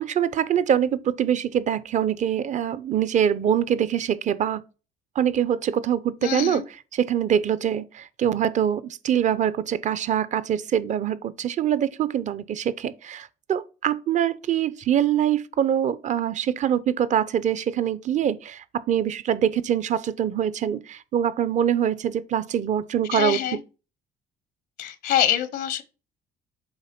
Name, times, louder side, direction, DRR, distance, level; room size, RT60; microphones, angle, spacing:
voice 1, 0.0-4.6 5.2-6.6 6.9-23.4, right 9 dB, 45° right, 0.6 m, -24 dB
voice 2, 6.2-6.6 23.1-23.6 24.8-25.8, left 11 dB, 75° left, 0.8 m, -25 dB
8.0 x 3.5 x 5.9 m
cardioid pair, 110°, 17 cm